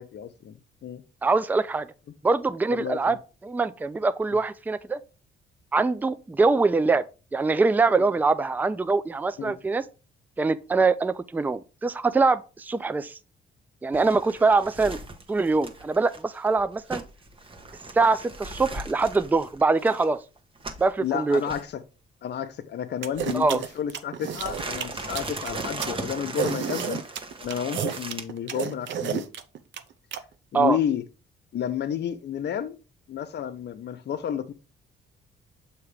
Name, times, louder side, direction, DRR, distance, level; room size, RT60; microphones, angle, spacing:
voice 1, 0.0-1.0 2.7-3.2 8.0-8.1 9.4-9.6 21.0-21.8 22.2-27.0 27.4-29.3 30.5-31.0 31.5-32.8 33.1-34.5, left 9 dB, 60° left, 0.8 m, -31 dB
voice 2, 1.2-1.9 2.2-3.2 3.4-5.0 5.7-7.0 7.3-9.8 10.4-13.2 13.8-15.0 15.3-17.0 17.9-20.2 20.8-21.4 23.3-23.6 30.5-30.8, right 3 dB, 10° right, 0.3 m, -23 dB
sound 1, 13.9-20.9 21.3-21.6 23.1-23.8 24.3-28.2, right 2 dB, 25° right, 1.1 m, -38 dB
sound 2, 23.0-30.2, right 9 dB, 70° right, 0.7 m, -31 dB
7.1 x 2.9 x 4.8 m
cardioid pair, 90°, 20 cm